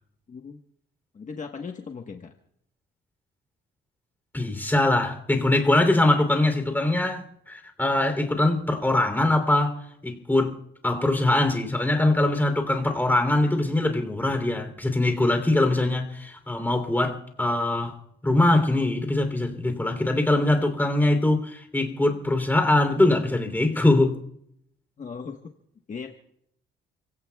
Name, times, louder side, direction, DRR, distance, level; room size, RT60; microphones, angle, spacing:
voice 1, 0.3-0.6 1.1-2.3 25.0-25.4 25.9-26.1, left 5 dB, 40° left, 1.3 m, -37 dB
voice 2, 4.3-10.6 10.8-18.0 18.2-24.2, left 2 dB, 10° left, 3.2 m, -22 dB
29.5 x 17.0 x 2.4 m
cardioid pair, 90°, 20 cm